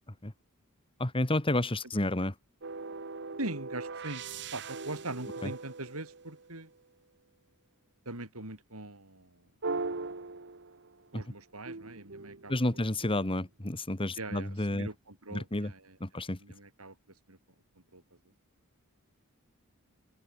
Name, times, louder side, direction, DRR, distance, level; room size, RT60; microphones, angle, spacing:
voice 1, 1.0-2.3 5.4-5.5 11.1-11.2 12.5-14.9 15.3-15.7 16.0-16.4, left 1 dB, 25° left, 1.8 m, -30 dB
sound 1, 2.6-6.8 9.6-11.1 11.7-13.4, right 3 dB, 55° right, 1.5 m, -40 dB
voice 2, 3.4-4.3 4.5-6.7 8.1-9.5 11.1-12.9 14.2-17.0 17.3-17.4 17.8-18.2, right 2 dB, 80° right, 7.5 m, -42 dB
open air
head